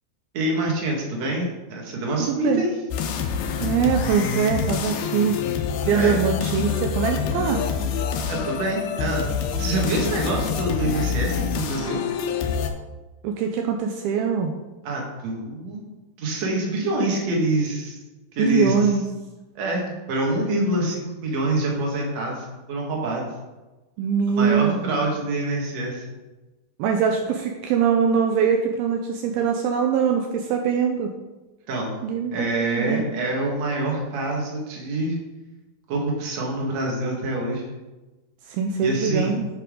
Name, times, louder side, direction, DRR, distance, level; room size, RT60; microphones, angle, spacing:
voice 1, 0.3-2.7 5.9-6.2 8.3-9.3 9.6-12.0 14.8-15.8 16.2-18.0 18.3-18.8 19.6-23.3 24.4-26.1 31.7-31.9 32.3-35.2 35.9-37.6 38.8-39.3, right 1 dB, 50° right, -1 dB, 2.4 m, -26 dB
voice 2, 2.2-2.6 3.6-5.4 5.9-7.6 13.2-14.5 18.4-19.0 24.0-24.8 26.8-31.1 32.0-33.0 38.4-39.5, right 6 dB, 85° right, 3 dB, 2.2 m, -22 dB
sound 1, 2.9-12.7, left 7 dB, 80° left, 2.4 m, -26 dB
10.5 x 5.8 x 3.8 m, 1.1 s
omnidirectional pair, 4.9 m